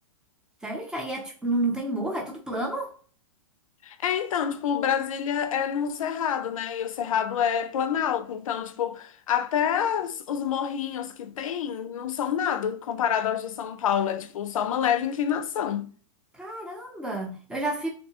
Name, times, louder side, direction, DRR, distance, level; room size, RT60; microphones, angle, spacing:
voice 1, 0.6-2.9 16.3-17.9, right 2 dB, 5° right, 0.5 m, -30 dB
voice 2, 3.8-15.9, left 8 dB, 90° left, 0.4 m, -27 dB
2.7 x 2.1 x 2.8 m
hypercardioid pair, 155°, 17 cm